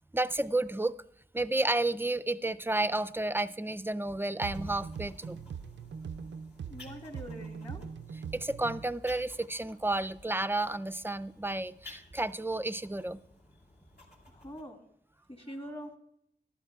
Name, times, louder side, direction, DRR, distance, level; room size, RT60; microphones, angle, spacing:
voice 1, 0.1-1.0 1.3-5.4 8.3-13.2, right 2 dB, 10° right, 0.3 m, -31 dB
sound 1, 4.4-8.9, right 6 dB, 90° right, 0.4 m, -42 dB
sound 2, 4.5-14.6, left 2 dB, 65° left, 2.5 m, -53 dB
voice 2, 6.7-7.9 14.3-14.8 15.3-15.9, equal, 30° left, 2.1 m, -44 dB
22.0 x 12.5 x 2.3 m
wide cardioid pair, 90°, 19 cm